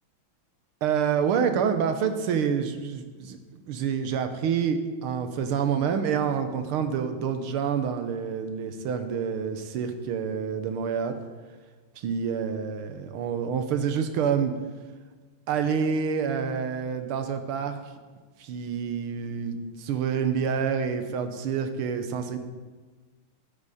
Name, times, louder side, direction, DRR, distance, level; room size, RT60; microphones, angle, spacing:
voice 1, 0.8-11.2 12.0-14.5 15.5-17.8 18.4-22.4, right 7 dB, 85° right, 8 dB, 1.8 m, -27 dB
15.5 x 8.6 x 4.2 m, 1.3 s
omnidirectional pair, 2.3 m